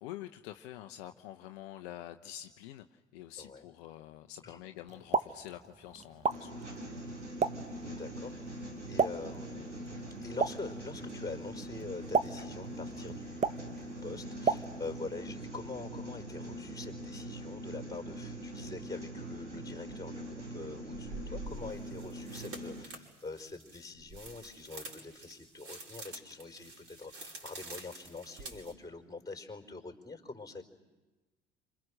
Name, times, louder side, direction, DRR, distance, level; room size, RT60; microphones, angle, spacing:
voice 1, 0.0-6.6, left 13 dB, 60° left, 7 dB, 1.0 m, -47 dB
voice 2, 3.4-3.7 4.4-4.6 7.8-8.6 8.9-30.6, left 3 dB, 10° left, 2 dB, 4.7 m, -45 dB
Explosion, 4.9-15.1, right 5 dB, 20° right, 1.0 m, -36 dB
sound 1, 6.2-22.8, right 1 dB, 90° right, 2.3 m, -43 dB
sound 2, 19.9-20.0 20.9-28.7, right 2 dB, 40° right, 5.6 m, -47 dB
28.5 x 26.0 x 6.5 m, 1.2 s
figure-of-eight pair, 60°, 35 cm